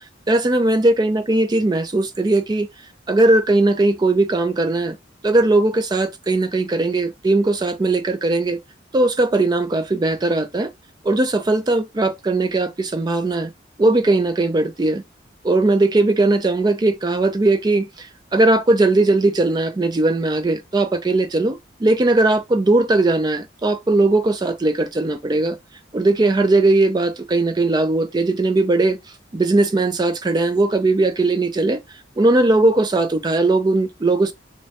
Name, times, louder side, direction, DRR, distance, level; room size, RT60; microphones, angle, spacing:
voice 1, 0.3-2.7 3.1-5.0 5.2-8.6 8.9-10.7 11.0-13.5 13.8-15.0 15.4-25.6 25.9-29.0 29.3-31.8 32.2-34.3, right 2 dB, 20° right, 0.3 m, -18 dB
3.1 x 2.1 x 2.7 m
head